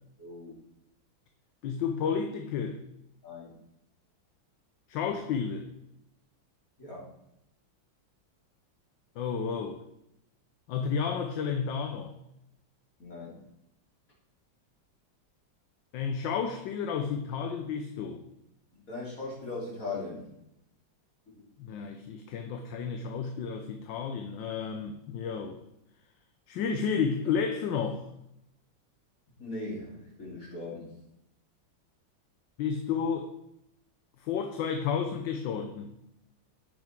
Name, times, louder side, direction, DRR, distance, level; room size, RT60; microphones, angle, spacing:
voice 1, 0.2-0.5 3.2-3.5 6.8-7.1 13.0-13.4 18.7-20.2 29.4-30.9, left 2 dB, 40° left, -5 dB, 3.6 m, -39 dB
voice 2, 1.6-2.8 4.9-5.7 9.2-9.8 10.7-12.2 15.9-18.2 21.6-25.6 26.5-28.1 32.6-33.3 34.2-35.9, left 6 dB, 70° left, 6 dB, 1.4 m, -31 dB
9.4 x 5.9 x 4.4 m, 0.83 s
omnidirectional pair, 2.2 m